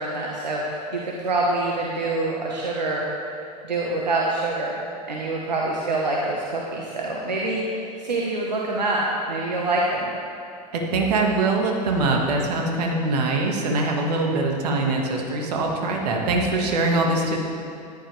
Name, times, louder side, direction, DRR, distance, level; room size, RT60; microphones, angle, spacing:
voice 1, 0.0-3.0 3.6-4.8 5.1-9.0 9.3-10.1, right 2 dB, 85° right, -3 dB, 1.3 m, -26 dB
voice 2, 10.7-17.4, right 2 dB, 70° right, 1 dB, 1.9 m, -23 dB
14.0 x 10.5 x 3.4 m, 2.6 s
hypercardioid pair, 90°, 21 cm